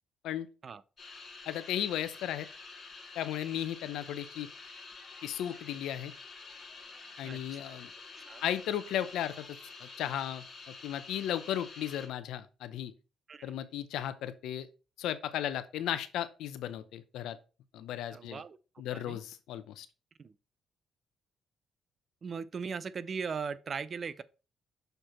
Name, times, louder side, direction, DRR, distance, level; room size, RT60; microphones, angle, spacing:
sound 1, 1.0-12.1, left 4 dB, 40° left, 2.0 m, -49 dB
voice 1, 1.5-2.5 3.1-4.5 5.2-6.1 7.2-7.9 8.4-12.9 13.4-14.7 15.0-17.4 17.7-18.4 18.8-19.9, left 11 dB, 85° left, 0.7 m, -35 dB
voice 2, 7.2-7.8 8.2-8.4 13.3-13.5 18.1-18.6 18.9-19.2 20.2-20.3 22.2-24.2, right 5 dB, 45° right, 0.5 m, -39 dB
6.7 x 4.5 x 4.3 m
cardioid pair, 90°, 0 cm